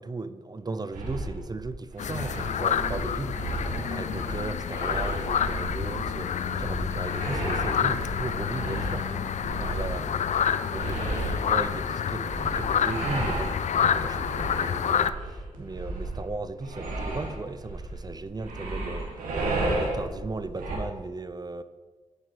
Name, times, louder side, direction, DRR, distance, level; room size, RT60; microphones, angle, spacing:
voice 1, 0.0-21.6, right 3 dB, 30° right, 0.5 m, -37 dB
sound 1, 0.9-20.8, right 2 dB, 90° right, 1.6 m, -34 dB
sound 2, 2.0-15.1, left 8 dB, 60° left, 0.4 m, -28 dB
9.4 x 4.6 x 4.6 m
cardioid pair, 50°, 14 cm